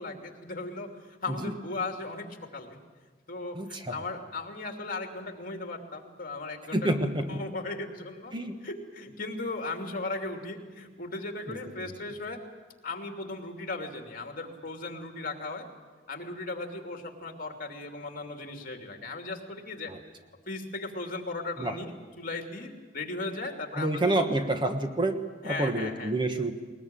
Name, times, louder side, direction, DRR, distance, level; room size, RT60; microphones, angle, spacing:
voice 1, 0.0-2.3 2.5-2.7 3.3-8.3 8.6-12.4 12.8-15.7 16.1-19.9 20.5-24.2 25.4-26.1, left 2 dB, 50° left, 4 dB, 2.9 m, -37 dB
voice 2, 3.5-4.0 6.7-7.4 8.3-8.6 11.5-11.6 19.9-20.0 21.6-21.8 23.7-25.2 25.4-26.6, right 1 dB, 25° right, 6 dB, 1.3 m, -28 dB
20.5 x 20.5 x 9.0 m, 1.4 s
head